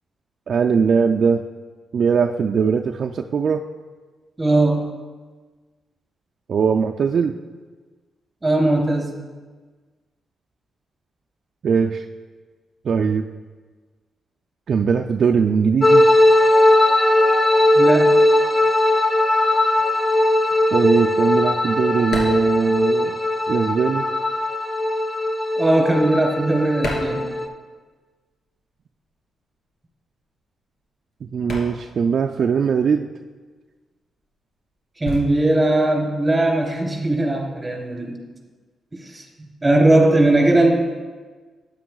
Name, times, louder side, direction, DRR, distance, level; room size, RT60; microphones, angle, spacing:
voice 1, 0.5-1.4 1.9-3.6 6.5-7.4 11.6-12.0 12.8-13.3 14.7-16.2 20.7-23.1 23.5-24.1 31.2-33.1, right 6 dB, 60° right, 4 dB, 0.4 m, -20 dB
voice 2, 4.4-4.9 8.4-9.1 17.7-18.2 25.6-27.2 35.0-38.2 39.0-40.7, right 2 dB, 20° right, 0 dB, 3.1 m, -19 dB
sound 1, 15.8-27.5, left 1 dB, 25° left, 1.0 m, -18 dB
sound 2, 20.3-23.6 23.9-28.0 28.3-37.0, left 1 dB, 60° left, 2.6 m, -36 dB
12.5 x 9.6 x 2.3 m, 1.4 s
cardioid pair, 70°, 0 cm